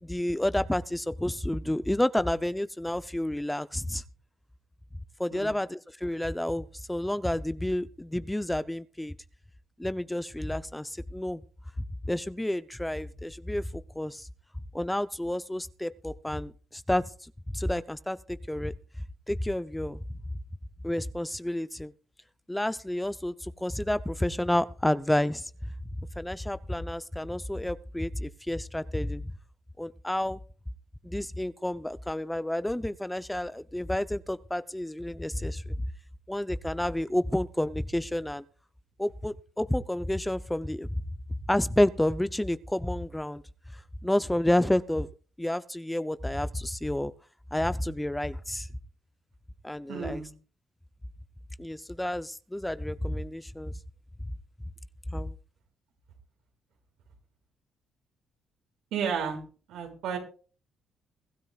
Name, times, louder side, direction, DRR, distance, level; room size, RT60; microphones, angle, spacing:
voice 1, 0.0-4.0 5.2-9.1 9.8-11.4 12.1-14.3 14.7-18.7 19.3-20.0 20.8-21.9 22.5-25.5 26.2-29.3 29.8-30.4 31.0-35.7 36.3-38.4 39.0-40.9 41.5-43.4 44.0-45.1 45.4-47.1 47.5-48.7 49.6-50.2 51.6-53.7 55.1-55.3, left 1 dB, 5° left, 0.6 m, -30 dB
voice 2, 49.9-50.3 58.9-59.4 59.7-60.2, right 7 dB, 90° right, 6.3 m, -32 dB
23.0 x 13.0 x 2.4 m
cardioid pair, 90°, 0 cm